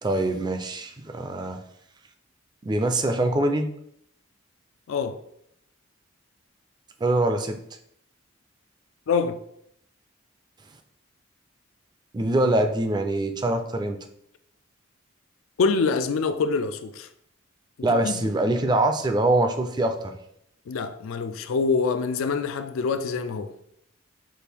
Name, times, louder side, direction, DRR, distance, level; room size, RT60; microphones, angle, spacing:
voice 1, 0.0-1.6 2.6-3.7 7.0-7.6 12.1-14.0 17.8-20.1, right 2 dB, 20° right, 0.4 m, -24 dB
voice 2, 9.1-9.4 15.6-17.1 18.0-18.2 20.7-23.5, left 4 dB, 80° left, 0.4 m, -25 dB
6.1 x 2.5 x 3.4 m
head